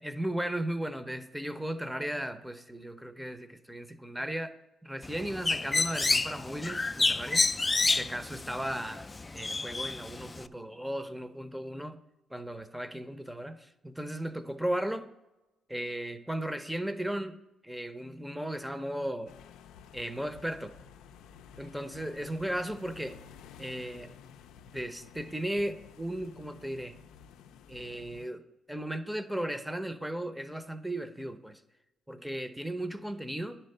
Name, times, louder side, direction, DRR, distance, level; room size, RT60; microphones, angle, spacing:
voice 1, 0.0-4.5 4.8-7.4 7.9-12.0 12.3-15.1 15.7-17.4 17.6-19.3 19.9-20.7 21.6-23.2 23.6-24.1 24.7-27.0 27.7-28.4 28.7-31.6 32.1-33.6, right 1 dB, 5° right, 11 dB, 0.7 m, -36 dB
Bird, 5.0-10.5, left 3 dB, 25° left, 0.3 m, -29 dB
sound 1, 19.3-28.3, left 7 dB, 90° left, 0.4 m, -52 dB
10.0 x 4.4 x 6.6 m, 0.99 s
cardioid pair, 90°, 0 cm